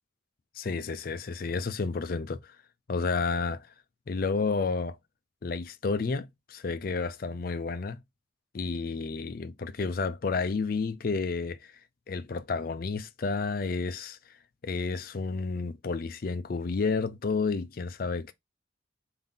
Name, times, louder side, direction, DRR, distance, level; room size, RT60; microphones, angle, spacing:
voice 1, 0.6-2.6 2.9-3.7 4.1-5.0 5.4-8.0 8.5-11.7 12.1-14.2 14.6-18.3, left 4 dB, 45° left, 0.4 m, -31 dB
3.5 x 2.6 x 3.7 m
head